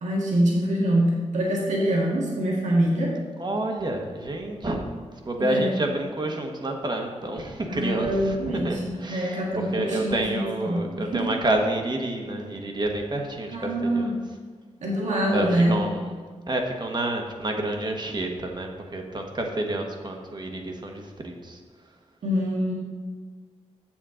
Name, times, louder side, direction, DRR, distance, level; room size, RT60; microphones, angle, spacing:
voice 1, 0.0-3.2 5.4-5.7 7.7-11.3 13.5-14.2 14.8-15.8 22.2-22.7, right 1 dB, 75° right, -4 dB, 1.8 m, -25 dB
voice 2, 3.4-4.9 5.3-14.2 15.3-16.1 16.5-21.6, right 1 dB, 35° right, 2 dB, 1.2 m, -29 dB
7.4 x 7.3 x 3.8 m, 1.5 s
cardioid pair, 70°, 12 cm